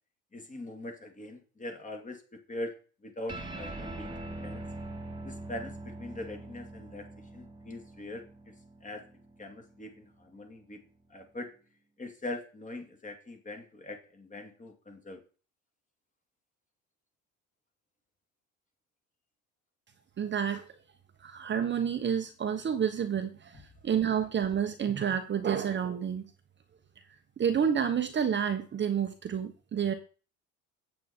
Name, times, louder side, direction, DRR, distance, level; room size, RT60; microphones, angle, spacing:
voice 1, 0.3-2.2 2.5-2.7 3.0-4.6 5.2-7.1 7.3-8.5 8.8-9.0 9.4-10.8 11.1-11.5 12.0-15.2, left 1 dB, 20° left, 4 dB, 2.4 m, -42 dB
sound 1, 3.3-10.1, right 2 dB, 15° right, 2.0 m, -43 dB
voice 2, 20.2-20.6 21.2-26.2 27.4-29.9, right 8 dB, 30° right, 7 dB, 1.0 m, -29 dB
8.3 x 8.2 x 4.4 m, 0.37 s
cardioid pair, 110°, 35 cm